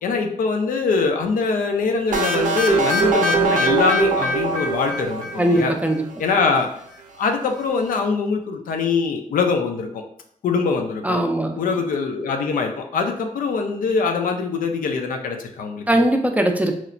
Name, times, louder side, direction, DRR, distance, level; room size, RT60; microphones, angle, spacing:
voice 1, 0.0-5.7 6.2-6.7 7.2-10.0 10.4-11.2 11.6-16.0, left 4 dB, 85° left, 4 dB, 0.4 m, -23 dB
sound 1, 2.1-5.9, right 3 dB, 75° right, 0.4 m, -21 dB
voice 2, 5.4-6.0 11.0-11.6 15.9-16.7, right 1 dB, 10° right, 4 dB, 0.3 m, -20 dB
3.0 x 2.0 x 2.4 m, 0.69 s
cardioid pair, 75°, 14 cm